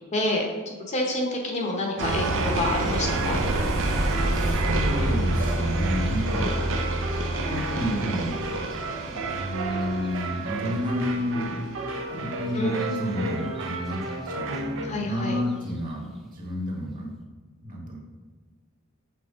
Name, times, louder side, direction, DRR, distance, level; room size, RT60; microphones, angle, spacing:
voice 1, 0.1-3.4 12.5-13.5 14.8-15.4, left 1 dB, 35° left, 0 dB, 0.9 m, -28 dB
sound 1, 2.0-14.9, right 2 dB, 65° right, 0.7 m, -29 dB
sound 2, 3.0-10.7 12.8-13.0 13.4-13.9 14.5-14.6 15.2-15.5, equal, ahead, 0.7 m, -30 dB
voice 2, 4.3-6.5 7.5-8.4 9.1-11.6 12.1-14.0 14.2-17.1 17.6-18.0, equal, 40° right, -1 dB, 1.4 m, -30 dB
6.2 x 4.3 x 3.7 m, 1.4 s
head